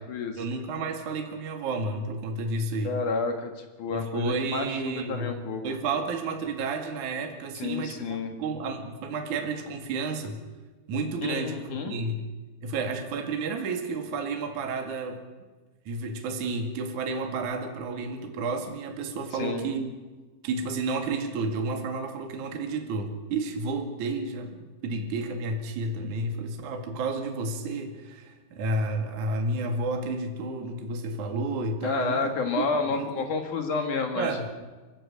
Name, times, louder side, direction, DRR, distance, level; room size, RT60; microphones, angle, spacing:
voice 1, 0.4-3.0 3.9-5.4 5.6-10.4 10.9-12.3 12.6-15.2 15.9-19.9 20.4-33.3 34.2-34.5, right 3 dB, 50° right, 4 dB, 3.3 m, -31 dB
voice 2, 2.8-3.5 3.8-5.6 7.5-8.3 11.2-11.9 19.4-19.7 31.8-34.3, left 4 dB, 55° left, 5 dB, 3.0 m, -30 dB
29.5 x 15.0 x 8.7 m, 1.3 s
omnidirectional pair, 4.8 m